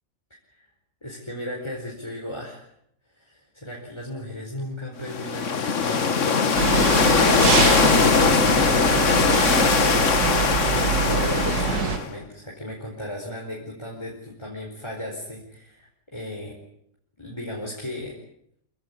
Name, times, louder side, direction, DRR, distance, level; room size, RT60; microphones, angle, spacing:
voice 1, 1.0-2.7 3.1-6.8 7.4-16.6 17.2-18.2, left 1 dB, 15° left, -1 dB, 4.6 m, -36 dB
sound 1, 5.0-12.1, left 5 dB, 50° left, 1.6 m, -20 dB
sound 2, 6.6-12.0, right 6 dB, 80° right, 2.0 m, -24 dB
26.5 x 16.5 x 9.7 m, 0.74 s
omnidirectional pair, 1.7 m